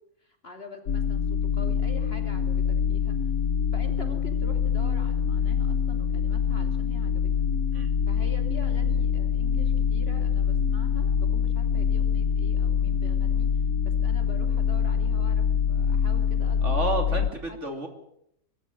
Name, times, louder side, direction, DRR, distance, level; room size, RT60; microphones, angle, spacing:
voice 1, 0.2-3.1 3.7-7.3 8.1-13.5 13.8-17.2 17.5-17.7, left 2 dB, 35° left, 5 dB, 3.0 m, -45 dB
sound 1, 0.9-17.3, left 7 dB, 75° left, 1.7 m, -25 dB
voice 2, 16.6-17.9, right 3 dB, 45° right, 5 dB, 3.1 m, -30 dB
24.0 x 13.5 x 9.5 m, 0.76 s
omnidirectional pair, 1.8 m